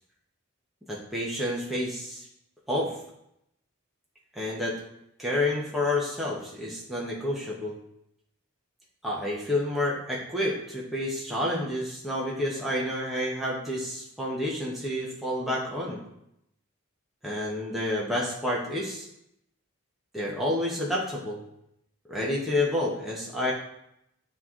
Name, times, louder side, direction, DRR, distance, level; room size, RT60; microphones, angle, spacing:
voice 1, 0.9-2.3 2.7-2.9 4.3-4.8 5.2-7.8 9.0-16.0 17.2-19.1 20.1-21.4 22.1-23.5, left 1 dB, ahead, -5 dB, 1.0 m, -29 dB
9.2 x 3.1 x 3.7 m, 0.78 s
head